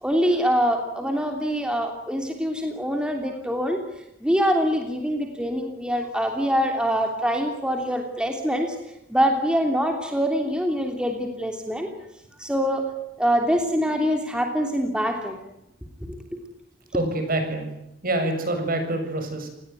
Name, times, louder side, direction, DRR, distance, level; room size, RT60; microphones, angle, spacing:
voice 1, 0.0-3.8 4.2-8.7 9.1-11.9 12.4-12.9 13.2-15.4 16.1-16.2, equal, 5° right, 3 dB, 3.1 m, -24 dB
voice 2, 16.9-17.7 18.0-19.5, right 1 dB, 50° right, 6 dB, 7.4 m, -26 dB
29.5 x 19.5 x 9.5 m, 0.86 s
head